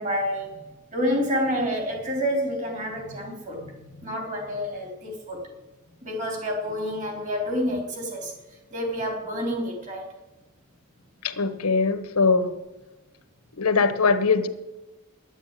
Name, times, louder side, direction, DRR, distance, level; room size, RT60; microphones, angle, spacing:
voice 1, 0.0-5.5 6.0-10.1, equal, 35° right, 1 dB, 3.5 m, -29 dB
voice 2, 11.2-12.5 13.6-14.5, left 4 dB, 90° left, 10 dB, 1.0 m, -21 dB
9.8 x 9.4 x 9.1 m, 1.1 s
head